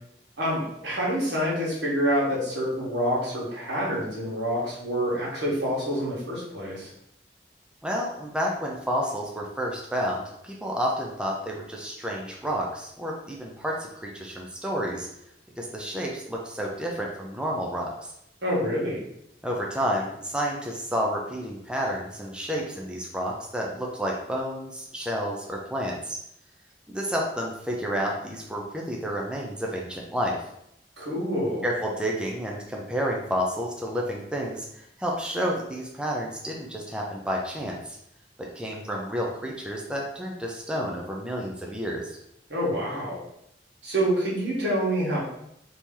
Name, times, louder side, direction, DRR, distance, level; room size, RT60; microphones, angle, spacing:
voice 1, 0.4-6.9 18.4-19.0 31.0-31.7 42.5-43.2 43.8-45.2, equal, 80° right, -5 dB, 1.4 m, -27 dB
voice 2, 7.8-15.1 15.6-18.1 19.4-26.2 26.9-30.4 31.6-38.0 38.4-42.2, equal, 5° right, -2 dB, 0.4 m, -30 dB
3.0 x 2.7 x 3.6 m, 0.77 s
head